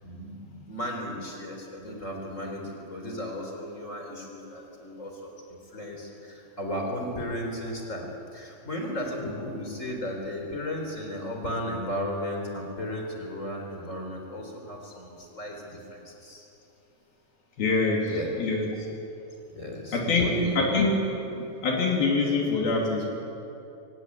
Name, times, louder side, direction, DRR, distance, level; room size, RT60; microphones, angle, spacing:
voice 1, 0.0-16.5 18.1-18.3 18.8-18.9 19.6-20.8, left 1 dB, 20° left, 1 dB, 3.6 m, -35 dB
voice 2, 17.6-18.7 19.9-20.9 21.4-23.1, left 3 dB, 60° left, -1 dB, 4.5 m, -25 dB
24.5 x 17.5 x 9.8 m, 2.8 s
omnidirectional pair, 4.9 m